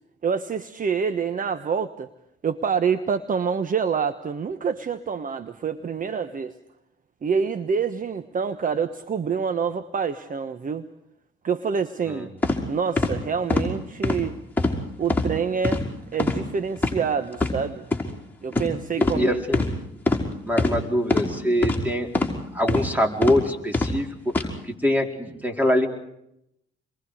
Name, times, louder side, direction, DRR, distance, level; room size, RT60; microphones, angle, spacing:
voice 1, 0.2-2.1 2.4-6.5 7.2-10.8 11.4-12.3 12.7-14.4 15.0-15.8 16.1-17.8 18.4-19.4, right 6 dB, 45° right, 11 dB, 1.2 m, -26 dB
sound 1, 12.4-12.6 13.0-13.1 13.5-13.7 14.0-14.2 14.6-14.8 15.1-15.3 15.6-15.8 16.2-16.4 16.8-16.9 17.3-17.5 17.9-18.0 18.5-18.7 19.0-19.2 19.5-19.7 20.1-20.2 20.6-20.7 21.1-21.3 21.6-21.8 22.1-22.3 22.7-22.9 23.2-23.4 23.7-23.9 24.3-24.5, left 2 dB, 10° left, 5.6 m, -22 dB
voice 2, 19.0-19.7 20.5-22.2 22.5-25.9, left 1 dB, 10° right, 3 dB, 4.5 m, -24 dB
28.5 x 22.5 x 5.0 m, 0.78 s
cardioid pair, 90°, 20 cm